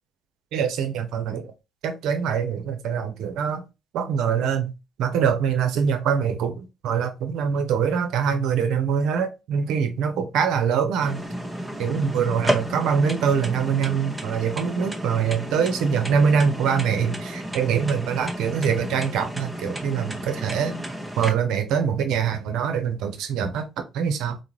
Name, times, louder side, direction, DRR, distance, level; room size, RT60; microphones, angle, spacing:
voice 1, 0.5-1.5 1.8-3.6 3.9-4.7 5.0-11.2 11.8-20.8 21.2-24.4, right 7 dB, 65° right, 0.6 m, -24 dB
sound 1, 11.0-21.3, right 1 dB, 10° right, 0.8 m, -32 dB
3.6 x 2.0 x 3.0 m
hypercardioid pair, 50°, 0 cm